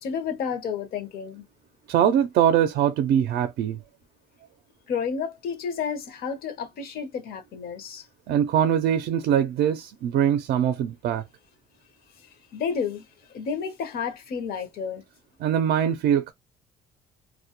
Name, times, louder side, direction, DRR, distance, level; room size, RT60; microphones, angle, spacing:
voice 1, 0.0-1.4 4.9-8.0 12.5-15.0, left 6 dB, 65° left, 0.6 m, -31 dB
voice 2, 1.9-3.8 8.3-11.2 15.4-16.3, right 9 dB, 70° right, 0.4 m, -22 dB
2.1 x 2.1 x 2.8 m
cardioid pair, 110°, 17 cm